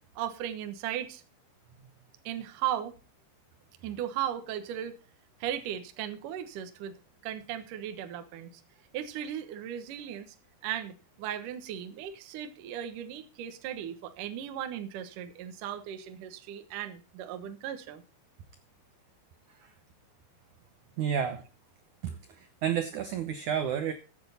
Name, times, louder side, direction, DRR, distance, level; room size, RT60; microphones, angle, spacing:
voice 1, 0.2-1.2 2.3-2.9 3.8-4.9 5.4-6.9 7.2-8.5 8.9-10.3 10.6-18.0, right 10 dB, 65° right, 8 dB, 2.3 m, -36 dB
voice 2, 21.0-21.4 22.0-22.2 22.6-23.9, right 8 dB, 85° right, 8 dB, 1.7 m, -30 dB
15.0 x 8.7 x 4.2 m, 0.36 s
omnidirectional pair, 4.9 m